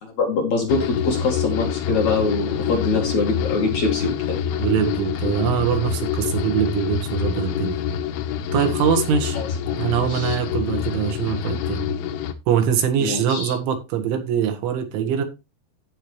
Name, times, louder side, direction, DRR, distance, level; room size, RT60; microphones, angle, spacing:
voice 1, 0.0-4.4 9.3-9.7 10.1-10.4 13.0-13.5, left 3 dB, 50° left, 1 dB, 2.5 m, -24 dB
sound 1, 0.7-12.3, left 8 dB, 85° left, 3.3 m, -26 dB
voice 2, 4.6-7.8 8.5-9.4 9.8-11.9 12.5-15.2, right 8 dB, 85° right, 6 dB, 3.9 m, -23 dB
15.5 x 5.3 x 3.1 m, 0.26 s
omnidirectional pair, 5.2 m